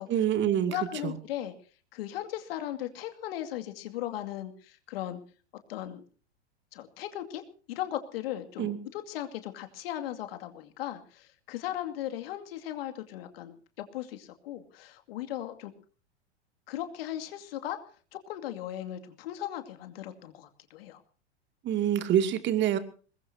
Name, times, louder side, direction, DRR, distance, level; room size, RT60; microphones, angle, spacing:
voice 1, 0.1-0.7 1.0-1.2 8.6-8.8 21.6-22.8, right 10 dB, 35° right, 10 dB, 2.6 m, -26 dB
voice 2, 0.7-1.5 1.9-5.2 5.7-6.0 6.7-7.4 7.7-15.7 16.7-17.8 18.1-21.0, left 12 dB, 60° left, 7 dB, 2.5 m, -37 dB
22.5 x 20.5 x 2.8 m, 0.39 s
hypercardioid pair, 100°, 34 cm